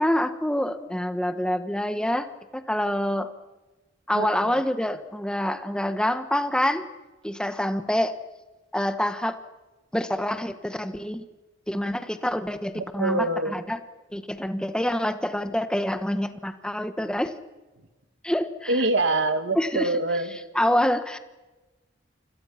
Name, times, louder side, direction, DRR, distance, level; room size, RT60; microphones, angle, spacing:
voice 1, 0.0-2.3 2.5-3.3 4.1-6.8 7.2-8.1 8.7-9.4 9.9-11.2 11.7-13.8 14.1-17.3 18.2-18.8 19.5-19.9 20.5-21.2, left 1 dB, 5° left, 9 dB, 1.3 m, -26 dB
voice 2, 4.1-4.5 12.8-13.5 18.7-20.4, right 2 dB, 70° right, 8 dB, 2.3 m, -25 dB
29.0 x 26.0 x 5.8 m, 1.2 s
head